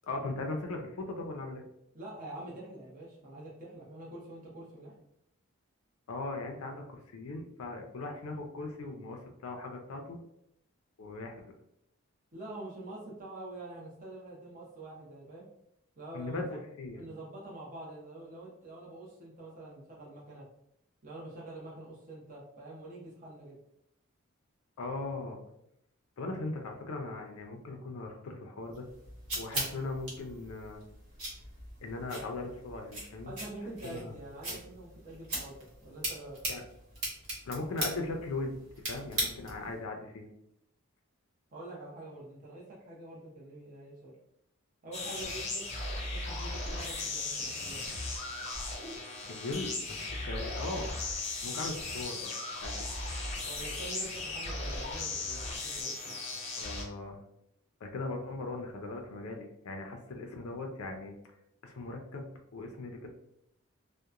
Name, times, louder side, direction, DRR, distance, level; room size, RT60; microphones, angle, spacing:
voice 1, 0.0-1.6 6.1-10.2 11.0-11.4 16.1-17.1 24.8-25.4 26.2-28.9 29.4-30.8 31.8-33.3 33.8-34.1 34.5-34.6 36.5-36.6 37.4-38.6 38.9-40.3 49.3-50.9 51.4-52.3 52.6-52.8 56.6-57.2 57.8-61.2 61.6-63.1, left 2 dB, 80° left, 3 dB, 0.4 m, -39 dB
voice 2, 1.9-4.9 12.3-15.4 16.0-16.6 16.9-20.5 21.0-23.6 33.2-36.4 41.5-44.1 44.8-45.7 46.0-47.8 53.4-56.2, right 2 dB, 35° right, -5 dB, 0.6 m, -46 dB
sound 1, 28.7-39.7, right 1 dB, 80° right, 1.1 m, -39 dB
sound 2, 44.9-56.8, left 2 dB, 30° left, 0.5 m, -37 dB
2.8 x 2.1 x 2.4 m, 0.77 s
head